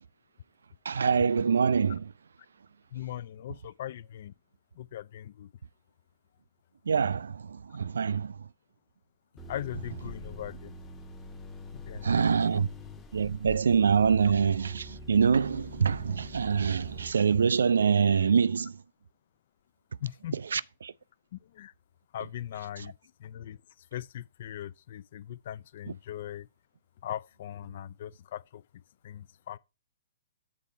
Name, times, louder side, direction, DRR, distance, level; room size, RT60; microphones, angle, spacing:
voice 1, 0.9-2.1 6.9-8.4 12.0-12.7 13.1-18.8 20.3-20.9, right 6 dB, 65° right, 0.3 m, -25 dB
voice 2, 2.9-4.3 4.7-5.5 7.7-7.8 9.5-10.7 11.7-12.6 20.0-20.3 21.3-21.7 22.1-22.9 23.2-26.5 27.0-28.6 29.0-29.6, left 11 dB, 45° left, 0.4 m, -40 dB
sound 1, 9.4-17.1, equal, 15° left, 0.9 m, -45 dB
8.2 x 4.4 x 4.4 m
figure-of-eight pair, 115°, 0 cm